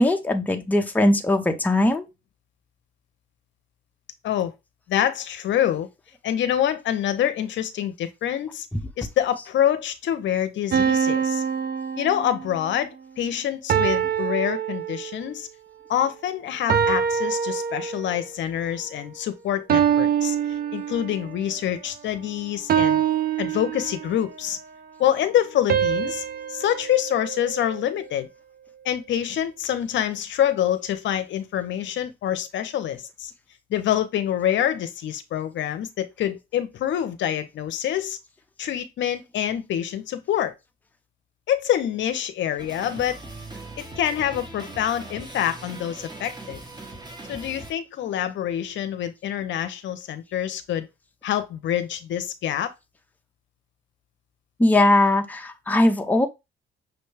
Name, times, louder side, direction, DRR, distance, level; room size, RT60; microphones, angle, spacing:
voice 1, 0.0-2.1 9.4-9.5 54.6-56.3, left 1 dB, 10° left, 0.6 m, -20 dB
voice 2, 4.9-5.9 6.2-8.7 9.0-11.4 12.0-15.5 15.9-23.0 23.4-24.6 25.0-28.3 28.8-33.3 33.7-38.2 38.6-40.5 41.5-43.2 43.8-46.6 47.3-50.9 51.2-52.7, left 10 dB, 70° left, 0.6 m, -26 dB
sound 1, 10.7-12.6 13.7-15.4 16.7-18.3 19.7-21.4 22.7-24.3 25.7-28.0, right 8 dB, 50° right, 0.5 m, -25 dB
sound 2, 42.6-47.7, right 2 dB, 20° right, 1.2 m, -40 dB
6.0 x 2.2 x 3.2 m
cardioid pair, 90°, 20 cm